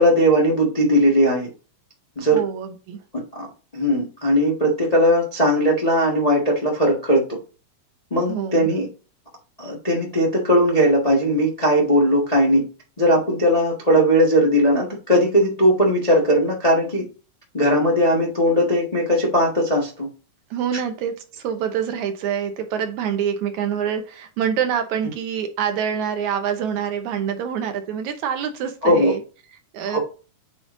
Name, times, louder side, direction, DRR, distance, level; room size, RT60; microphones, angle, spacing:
voice 1, 0.0-1.5 2.2-2.4 3.1-3.5 3.7-7.4 8.1-8.9 9.6-12.6 13.0-17.0 17.5-20.1 28.8-29.1 29.9-30.0, equal, 25° left, -2 dB, 0.8 m, -18 dB
voice 2, 2.2-3.0 8.3-8.7 20.5-29.2 29.7-30.0, right 8 dB, 70° right, 7 dB, 2.1 m, -26 dB
8.0 x 4.8 x 2.6 m, 0.35 s
omnidirectional pair, 3.6 m